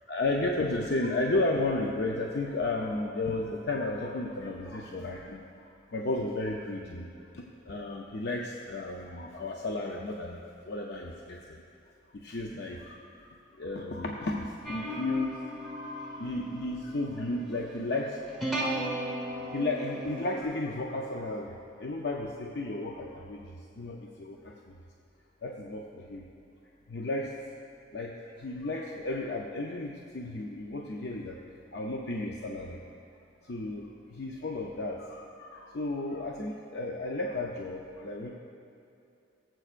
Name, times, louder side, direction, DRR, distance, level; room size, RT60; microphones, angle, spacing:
voice 1, 0.1-5.4 5.9-7.1 7.3-11.6 12.2-18.2 19.3-24.7 25.4-26.2 26.9-27.3 27.9-31.4 31.7-32.8 33.4-38.3, left 2 dB, 55° left, 0 dB, 0.6 m, -33 dB
sound 1, 14.6-20.4, right 1 dB, ahead, 1.1 m, -37 dB
18.5 x 7.7 x 2.5 m, 2.7 s
head